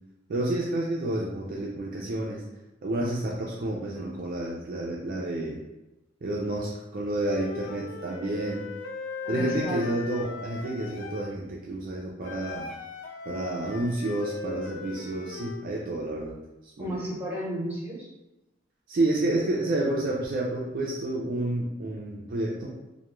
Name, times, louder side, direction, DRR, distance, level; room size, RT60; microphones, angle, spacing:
voice 1, 0.3-2.4 2.8-5.6 6.2-8.7 9.3-12.7 13.3-16.3 16.8-17.0 18.9-22.7, right 2 dB, 50° right, -3 dB, 0.3 m, -30 dB
Wind instrument woodwind instrument, 7.2-11.3 12.2-15.6, left 4 dB, 75° left, 0.4 m, -38 dB
voice 2, 9.2-9.9 16.8-18.1, equal, 10° right, -7 dB, 0.9 m, -33 dB
2.2 x 2.1 x 3.0 m, 0.98 s
head